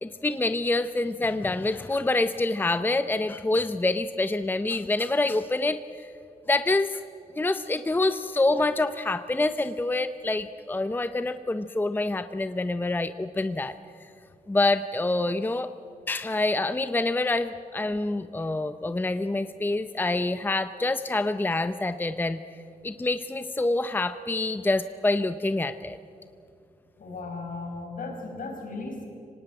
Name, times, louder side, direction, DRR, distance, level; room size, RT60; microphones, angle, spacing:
voice 1, 0.0-6.1 6.5-7.0 7.3-13.8 14.5-15.7 16.1-22.4 22.8-26.0, left 2 dB, 15° left, 11 dB, 0.6 m, -26 dB
voice 2, 27.0-29.0, left 3 dB, 65° left, 2 dB, 5.3 m, -36 dB
24.5 x 18.5 x 8.9 m, 2.5 s
wide cardioid pair, 125°, 15 cm